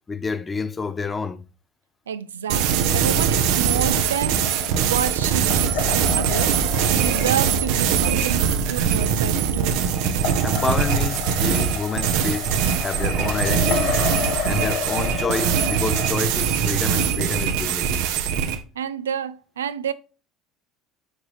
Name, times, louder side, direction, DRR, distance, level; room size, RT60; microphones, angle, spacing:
voice 1, 0.1-1.4 10.4-12.5 12.8-14.0 14.4-18.0, left 4 dB, 25° left, 0.6 m, -28 dB
voice 2, 2.1-4.6 4.8-9.8 18.8-19.9, right 9 dB, 85° right, 0.3 m, -29 dB
sound 1, 2.5-18.6, right 7 dB, 70° right, 0.7 m, -22 dB
sound 2, 3.6-16.1, left 7 dB, 65° left, 1.0 m, -32 dB
6.4 x 4.7 x 3.1 m
hypercardioid pair, 65°, 0 cm